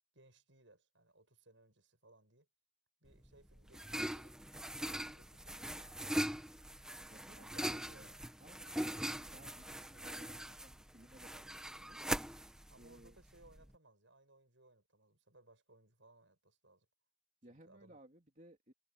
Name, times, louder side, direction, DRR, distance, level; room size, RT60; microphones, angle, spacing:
voice 1, 0.1-2.5 3.0-4.4 4.8-6.0 7.4-8.1 12.7-16.9 17.5-18.0, right 2 dB, 70° right, 7.2 m, -65 dB
sound 1, 3.1-13.7, equal, 5° right, 1.2 m, -41 dB
voice 2, 7.1-12.0 12.7-13.2 17.4-18.7, right 1 dB, 40° right, 3.3 m, -61 dB
head